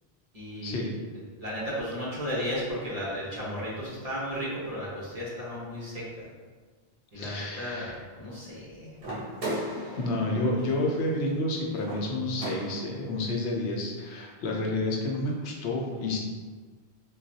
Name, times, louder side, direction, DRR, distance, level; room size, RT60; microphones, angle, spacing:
voice 1, 0.3-0.8 1.4-6.3 7.1-8.9, equal, 35° right, -8 dB, 1.0 m, -34 dB
voice 2, 7.2-7.9 10.0-16.2, left 2 dB, 80° left, 0 dB, 0.9 m, -30 dB
sound 1, 9.0-13.1, right 1 dB, 60° right, 1.1 m, -37 dB
3.9 x 2.2 x 2.7 m, 1.5 s
omnidirectional pair, 1.1 m